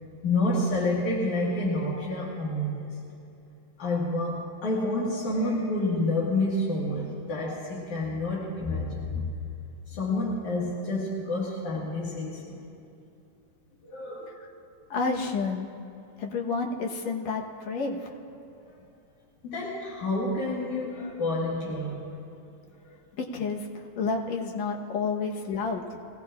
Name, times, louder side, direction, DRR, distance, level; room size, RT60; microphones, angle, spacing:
voice 1, 0.2-3.0 3.8-9.3 9.9-12.6 13.8-14.4 18.6-18.7 19.4-22.1 22.8-22.9, left 2 dB, 90° left, -6 dB, 3.4 m, -29 dB
voice 2, 14.9-15.7 16.2-18.2 23.2-25.8, left 4 dB, 70° left, 1 dB, 2.4 m, -30 dB
24.5 x 17.0 x 2.5 m, 2.7 s
omnidirectional pair, 3.3 m